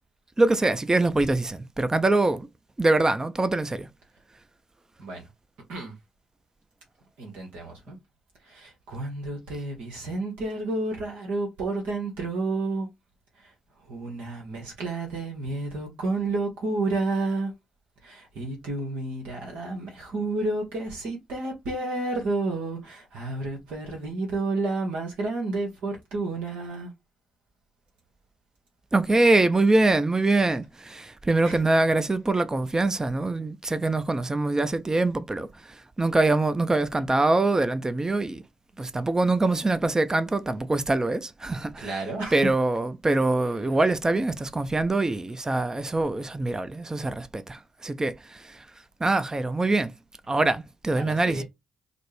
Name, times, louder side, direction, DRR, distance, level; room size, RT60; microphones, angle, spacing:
voice 1, 0.4-2.5 2.8-3.9 28.9-38.4 38.8-42.0 42.3-48.7 49.0-49.9 50.3-51.4, right 2 dB, 25° right, 0.5 m, -24 dB
voice 2, 7.2-8.0 8.4-12.9 13.4-13.5 13.9-17.5 18.0-26.9 31.4-31.6 41.8-42.4 51.0-51.4, right 2 dB, 80° right, 1.1 m, -31 dB
4.1 x 2.1 x 3.3 m
hypercardioid pair, 40°, 2 cm